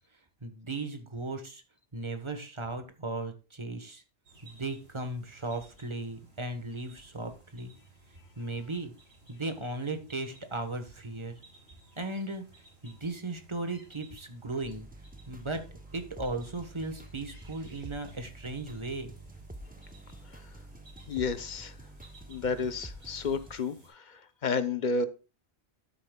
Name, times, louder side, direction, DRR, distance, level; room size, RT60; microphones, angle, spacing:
voice 1, 0.4-1.6 1.9-4.0 4.4-7.7 8.4-8.9 9.3-11.3 12.0-12.4 12.8-14.9 15.3-15.6 15.9-19.1, right 2 dB, 25° right, 1.2 m, -36 dB
sound 1, 4.2-23.9, right 2 dB, 85° right, 5.6 m, -58 dB
sound 2, 14.6-23.6, right 1 dB, 10° right, 0.6 m, -48 dB
voice 2, 21.1-21.8 22.3-25.1, left 4 dB, 50° left, 0.8 m, -31 dB
12.5 x 8.6 x 2.3 m
omnidirectional pair, 1.1 m